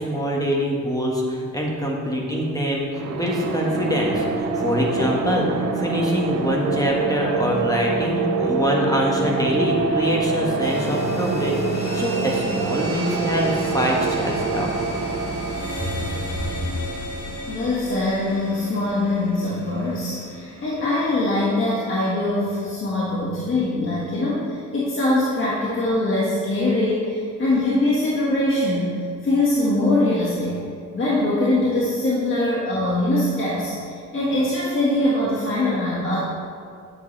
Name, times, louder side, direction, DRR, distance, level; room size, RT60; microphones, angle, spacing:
voice 1, 0.0-5.5 5.7-14.7 15.8-15.9, equal, 10° left, -2 dB, 1.5 m, -24 dB
sound 1, 2.9-17.6, right 4 dB, 60° right, 0.9 m, -26 dB
sound 2, 10.6-20.8, right 1 dB, 80° left, 1.9 m, -33 dB
voice 2, 17.5-30.6 30.9-36.2, left 1 dB, 40° left, -7 dB, 1.6 m, -22 dB
8.7 x 6.8 x 3.3 m, 2.3 s
cardioid pair, 90°, 30 cm